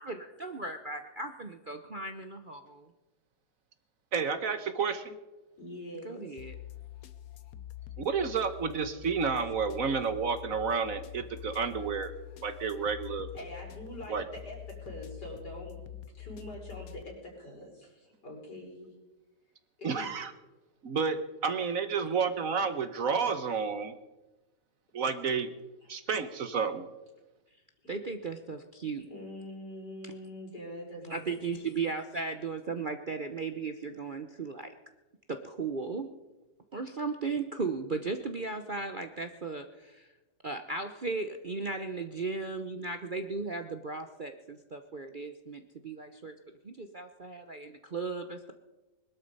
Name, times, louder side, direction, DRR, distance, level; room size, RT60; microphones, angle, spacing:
voice 1, 0.0-2.9 6.0-6.5 27.9-29.1 31.1-34.7 35.3-36.1 36.7-40.1 40.4-46.4 46.6-48.5, right 4 dB, 40° right, 7 dB, 0.7 m, -36 dB
voice 2, 4.1-5.2 8.0-12.1 12.4-13.3 14.1-14.2 19.8-20.3 20.8-23.9 24.9-25.5 25.9-26.9, right 5 dB, 55° right, 10 dB, 1.3 m, -30 dB
voice 3, 5.6-6.4 13.3-18.9 19.8-20.2 22.0-22.1 25.8-25.9 27.8-27.9 29.1-31.3, equal, 75° left, -3 dB, 6.2 m, -44 dB
sound 1, 6.4-17.0, left 12 dB, 60° left, 1.2 m, -46 dB
21.0 x 12.5 x 5.4 m, 1.1 s
omnidirectional pair, 1.8 m